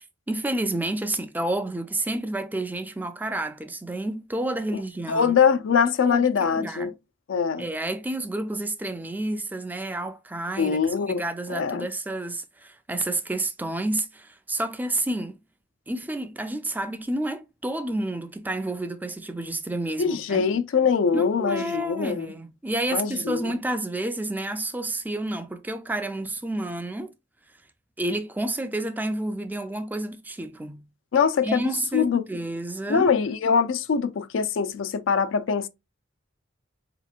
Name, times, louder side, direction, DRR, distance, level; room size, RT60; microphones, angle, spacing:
voice 1, 0.0-5.4 6.0-6.9 7.6-10.8 11.1-15.4 15.9-20.5 21.1-27.1 28.0-30.8 31.4-33.1, right 1 dB, 10° right, 0.3 m, -30 dB
voice 2, 5.1-6.9 7.3-7.7 10.6-11.2 11.5-11.9 20.0-22.3 22.9-23.6 31.1-32.2 32.9-35.7, left 6 dB, 90° left, 0.4 m, -23 dB
4.2 x 2.9 x 2.4 m
head